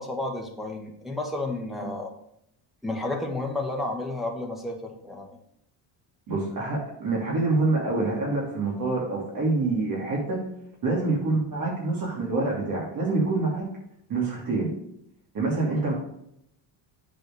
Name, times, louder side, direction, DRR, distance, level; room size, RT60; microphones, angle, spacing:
voice 1, 0.0-2.1 2.8-5.3, left 2 dB, ahead, 0 dB, 1.6 m, -31 dB
voice 2, 6.3-10.4 10.8-13.7 14.1-14.7 15.3-15.9, right 3 dB, 45° right, -4 dB, 2.9 m, -26 dB
7.7 x 4.7 x 6.6 m, 0.75 s
cardioid pair, 105°, 48 cm